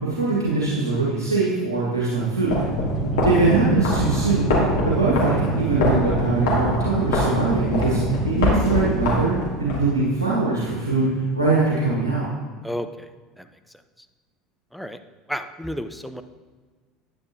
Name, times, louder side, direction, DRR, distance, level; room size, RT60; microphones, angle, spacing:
voice 1, 0.0-2.6 3.2-4.5 4.8-12.3, right 3 dB, 90° right, -7 dB, 1.6 m, -22 dB
sound 1, 2.4-9.8, equal, 70° left, 2.4 m, -23 dB
voice 2, 2.9-3.3 12.6-13.1 13.4-13.5 14.7-15.0 15.3-16.2, equal, ahead, 8 dB, 0.6 m, -32 dB
10.5 x 9.5 x 2.7 m, 1.4 s
figure-of-eight pair, 70°, 2 cm